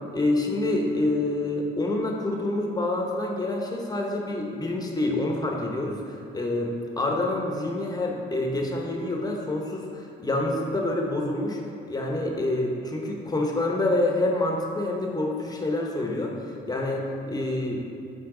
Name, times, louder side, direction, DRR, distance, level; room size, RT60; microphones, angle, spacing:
voice 1, 0.1-11.6 11.9-17.8, left 2 dB, 20° left, 0 dB, 1.0 m, -27 dB
7.7 x 4.5 x 3.8 m, 2.6 s
cardioid pair, 90°, 20 cm